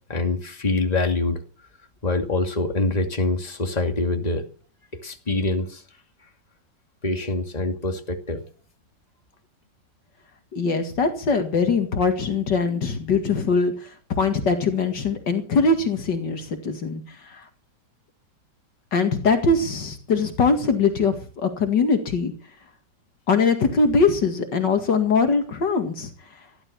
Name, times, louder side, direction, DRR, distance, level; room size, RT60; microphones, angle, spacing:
voice 1, 0.1-1.4 2.0-4.4 5.0-5.8 7.0-8.4, left 2 dB, 20° left, 4 dB, 2.5 m, -25 dB
voice 2, 10.5-13.7 14.1-17.0 17.3-17.4 18.9-22.3 23.3-26.1, left 4 dB, 70° left, 6 dB, 2.6 m, -22 dB
17.5 x 12.0 x 7.0 m, 0.42 s
omnidirectional pair, 2.0 m